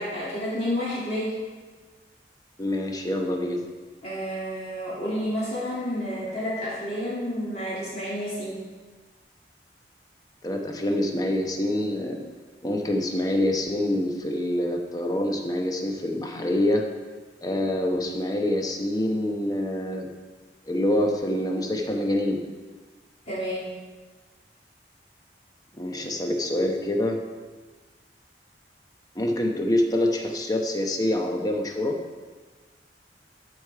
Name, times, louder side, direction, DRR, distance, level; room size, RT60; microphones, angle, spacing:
voice 1, 0.0-1.4 4.0-8.7 23.3-23.8, equal, 40° left, -9 dB, 2.8 m, -30 dB
voice 2, 2.6-3.6 10.4-12.2 12.6-16.8 17.4-20.1 20.7-22.4 25.8-27.2 29.1-32.0, left 1 dB, 20° left, 2 dB, 0.9 m, -26 dB
13.5 x 4.9 x 4.8 m, 1.4 s
head